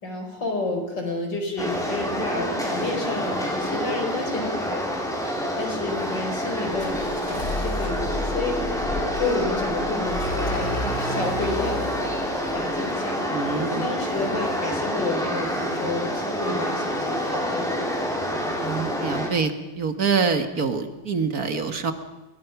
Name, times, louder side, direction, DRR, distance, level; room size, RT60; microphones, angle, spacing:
voice 1, 0.0-4.8 5.6-8.6 9.2-12.1 12.5-13.2 13.4-17.8, left 2 dB, 70° left, 3 dB, 5.3 m, -30 dB
sound 1, 1.6-19.3, equal, ahead, 5.0 m, -27 dB
sound 2, 6.7-13.6, left 2 dB, 55° left, 4.0 m, -33 dB
voice 2, 13.3-13.9 16.5-16.6 18.6-21.9, right 5 dB, 55° right, 8 dB, 1.9 m, -26 dB
29.0 x 21.5 x 5.9 m, 1.0 s
omnidirectional pair, 2.0 m